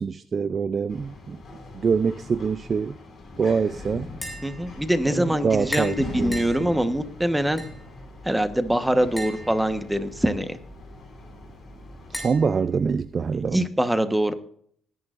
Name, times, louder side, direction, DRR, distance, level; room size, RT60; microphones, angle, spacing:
voice 1, 0.0-1.4 1.7-3.0 3.4-4.1 5.1-6.8 12.1-13.6, right 5 dB, 40° right, 0.5 m, -25 dB
sound 1, 0.9-12.3, left 2 dB, 45° left, 5.8 m, -42 dB
Tap, 4.0-13.5, equal, 10° left, 6.2 m, -41 dB
voice 2, 4.4-7.6 8.2-10.6 13.3-14.3, right 1 dB, 5° right, 1.3 m, -24 dB
19.5 x 11.0 x 2.6 m
cardioid pair, 90°, 0 cm